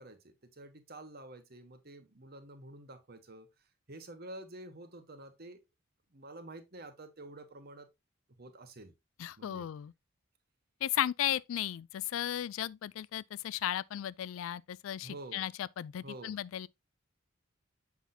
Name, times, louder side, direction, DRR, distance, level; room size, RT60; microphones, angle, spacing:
voice 1, 0.0-3.5 3.9-5.6 6.1-7.9 8.4-8.9 9.4-9.7 11.3-11.4 15.0-15.4 16.0-16.4, right 1 dB, 50° right, 1.2 m, -49 dB
voice 2, 9.2-9.9 10.8-16.7, left 11 dB, 75° left, 0.3 m, -35 dB
7.1 x 5.9 x 2.6 m
head